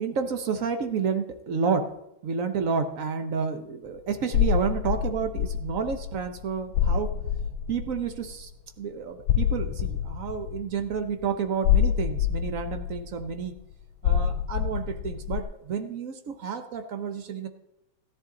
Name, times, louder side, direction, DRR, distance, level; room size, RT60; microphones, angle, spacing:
voice 1, 0.0-1.9 2.2-7.1 7.7-8.5 8.8-13.5 14.0-17.5, right 6 dB, 55° right, 8 dB, 0.9 m, -30 dB
sound 1, 4.3-8.3 9.3-11.1 11.6-13.5 14.0-15.4, left 9 dB, 85° left, 1.5 m, -26 dB
14.0 x 10.5 x 3.8 m, 0.84 s
omnidirectional pair, 2.2 m